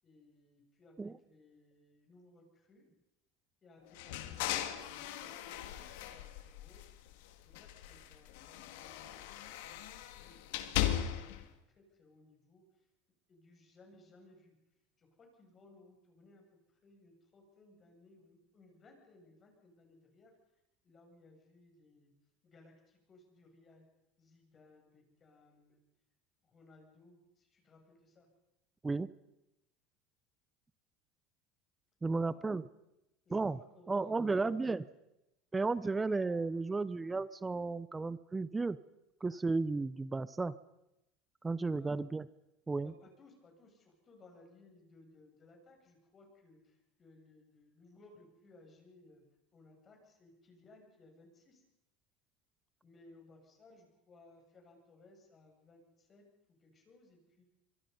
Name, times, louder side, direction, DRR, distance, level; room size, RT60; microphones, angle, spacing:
voice 1, 0.0-2.9 3.6-7.1 7.5-11.4 11.8-12.6 13.3-14.5 15.0-20.3 20.8-22.1 22.4-23.8 24.2-25.8 26.4-28.3 32.1-32.6 33.2-34.9 41.6-42.0 42.8-49.2 49.5-51.6 52.8-56.2 56.6-57.4, left 2 dB, 30° left, 2 dB, 7.5 m, -62 dB
sound 1, 3.9-7.1 7.5-11.4, left 12 dB, 80° left, 2.1 m, -38 dB
voice 2, 32.0-32.6 33.3-33.6 33.9-34.8 35.5-38.8 39.2-40.5 41.4-42.3 42.7-42.9, right 3 dB, 15° right, 17 dB, 0.7 m, -33 dB
24.5 x 23.5 x 5.5 m, 0.89 s
supercardioid pair, 115°, 0 cm